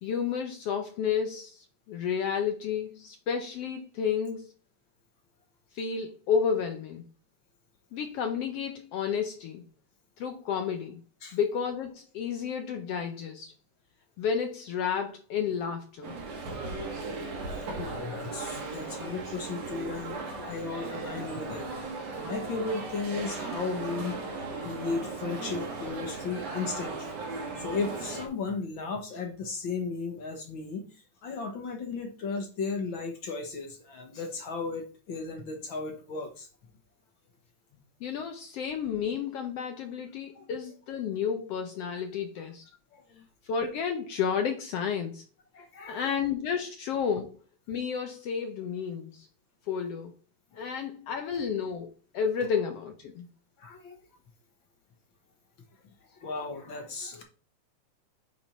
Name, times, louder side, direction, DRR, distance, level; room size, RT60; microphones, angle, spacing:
voice 1, 0.0-4.5 5.7-7.1 7.9-9.6 10.2-11.0 11.3-13.5 14.2-16.2 38.0-42.6 43.5-45.2 45.9-47.3 47.7-49.3 49.7-50.1 50.5-53.3, left 7 dB, 70° left, 1.5 m, -31 dB
sound 1, 16.0-28.3, right 3 dB, 60° right, 2.6 m, -37 dB
voice 2, 17.5-21.7 22.1-24.2 24.6-27.2 27.6-36.5 40.3-40.4 42.9-43.2 45.5-46.2 53.6-54.0 55.8-57.2, left 4 dB, 55° left, 1.4 m, -35 dB
8.7 x 4.3 x 4.4 m
omnidirectional pair, 3.4 m